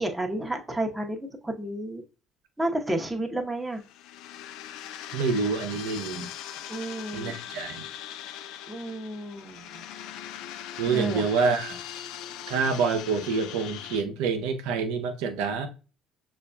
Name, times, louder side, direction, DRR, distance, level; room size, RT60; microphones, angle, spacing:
voice 1, 0.0-2.0 2.6-3.8 6.7-7.3 8.7-9.8 10.8-11.2, right 1 dB, 10° right, 0.9 m, -31 dB
sound 1, 3.7-14.0, left 10 dB, 65° left, 0.3 m, -40 dB
voice 2, 5.1-6.3 7.1-7.8 10.8-11.8 12.5-15.7, right 5 dB, 70° right, 0.6 m, -27 dB
6.7 x 2.5 x 2.2 m
hypercardioid pair, 55°, 0 cm